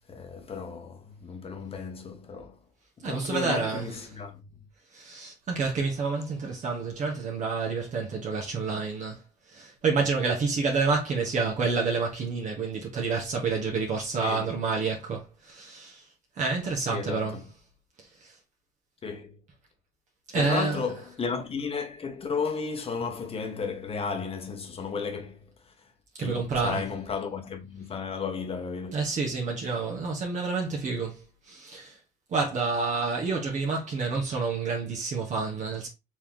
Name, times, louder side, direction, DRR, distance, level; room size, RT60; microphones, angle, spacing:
voice 1, 0.1-2.6 3.0-4.4 14.2-14.5 16.9-17.5 19.0-19.4 20.3-25.7 26.2-29.1, left 5 dB, 35° left, 1.2 m, -34 dB
voice 2, 3.0-4.0 4.9-9.2 9.5-16.1 16.4-17.4 18.2-18.3 20.3-20.8 26.2-26.8 28.9-32.0 32.3-35.9, right 4 dB, 45° right, 1.3 m, -29 dB
4.5 x 3.1 x 3.6 m
cardioid pair, 110°, 17 cm